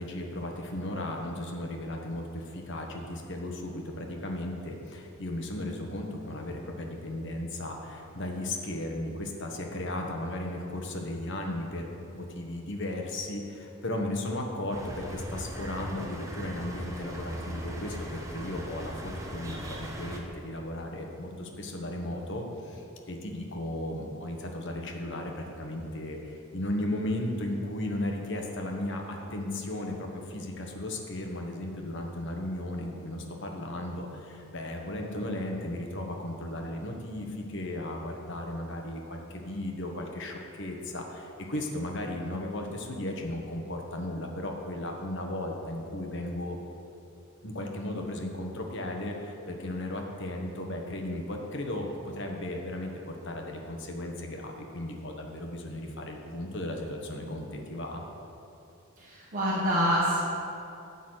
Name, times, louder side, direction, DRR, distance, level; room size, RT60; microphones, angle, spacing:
voice 1, 0.0-46.6 47.4-51.9 52.1-58.0, left 1 dB, 55° left, 2 dB, 1.2 m, -35 dB
sound 1, 14.7-20.2, equal, 15° right, 0.9 m, -38 dB
voice 2, 59.0-60.2, equal, 40° right, -8 dB, 1.4 m, -26 dB
12.0 x 4.1 x 8.0 m, 2.8 s
head